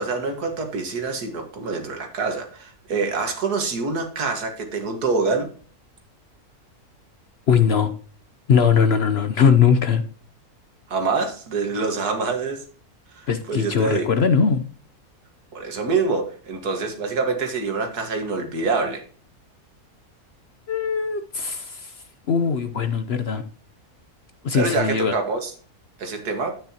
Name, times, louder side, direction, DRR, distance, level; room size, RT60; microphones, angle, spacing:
voice 1, 0.0-5.5 10.9-12.6 13.1-14.1 15.5-19.0 24.5-25.5 26.0-26.5, right 4 dB, 85° right, 2.1 m, -25 dB
voice 2, 7.5-7.9 8.5-10.0 13.3-14.6 20.7-21.9 22.3-23.4 24.4-25.1, left 6 dB, 55° left, 0.8 m, -20 dB
9.8 x 9.0 x 2.8 m
omnidirectional pair, 1.6 m